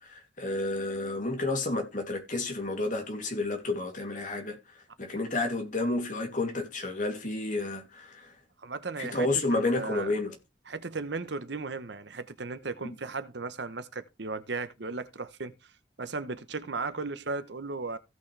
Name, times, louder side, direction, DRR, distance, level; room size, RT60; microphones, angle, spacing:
voice 1, 0.0-4.6 5.0-8.3 9.0-10.4, left 2 dB, 45° left, 2.8 m, -31 dB
voice 2, 8.6-10.1 10.7-15.5 16.0-18.0, right 3 dB, 65° right, 1.0 m, -36 dB
16.0 x 6.2 x 3.3 m
head